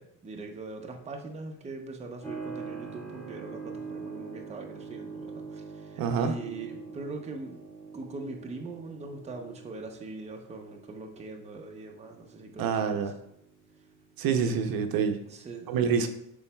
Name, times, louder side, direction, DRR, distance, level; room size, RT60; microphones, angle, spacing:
voice 1, 0.0-7.6 7.9-13.0 15.2-15.8, right 3 dB, 15° right, 2 dB, 0.6 m, -41 dB
Keyboard (musical), 2.2-14.6, right 5 dB, 5° left, 1.4 m, -44 dB
voice 2, 6.0-6.3 12.6-13.1 14.2-15.2 15.7-16.1, right 6 dB, 65° right, 7 dB, 0.7 m, -26 dB
11.5 x 3.9 x 2.2 m, 0.81 s
cardioid pair, 150°, 38 cm